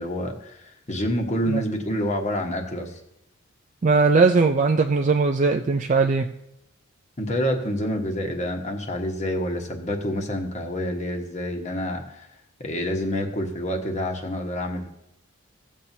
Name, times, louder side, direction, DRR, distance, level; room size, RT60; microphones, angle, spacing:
voice 1, 0.0-3.0 7.2-12.3 12.6-14.9, equal, 30° left, 2 dB, 1.2 m, -28 dB
voice 2, 3.8-6.3, right 4 dB, 35° right, 4 dB, 0.4 m, -19 dB
17.0 x 7.4 x 2.7 m, 0.81 s
head